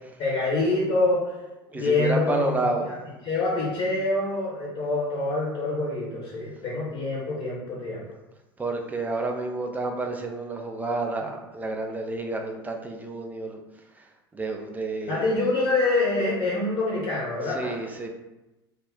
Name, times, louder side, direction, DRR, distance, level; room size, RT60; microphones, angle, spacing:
voice 1, 0.2-1.2 1.7-2.9 3.2-8.0 15.1-17.8, left 2 dB, 40° left, -5 dB, 0.9 m, -26 dB
voice 2, 1.7-2.9 8.6-13.6 14.0-14.1 14.3-15.3 17.5-18.1, right 2 dB, 10° right, 2 dB, 0.4 m, -30 dB
2.3 x 2.0 x 3.6 m, 1.0 s
figure-of-eight pair, 80°, 13 cm